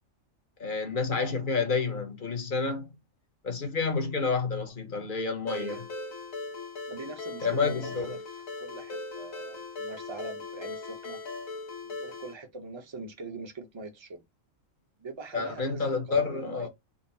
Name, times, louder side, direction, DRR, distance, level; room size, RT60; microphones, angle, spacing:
voice 1, 0.6-2.9 3.4-5.8 7.4-8.0 15.3-16.7, left 4 dB, 45° left, 0.9 m, -29 dB
Ringtone, 5.5-12.3, left 3 dB, 85° left, 1.5 m, -39 dB
voice 2, 5.5-5.8 6.9-11.2 11.8-14.2 15.0-16.7, right 3 dB, 25° right, 0.7 m, -42 dB
3.9 x 2.0 x 4.0 m
omnidirectional pair, 1.4 m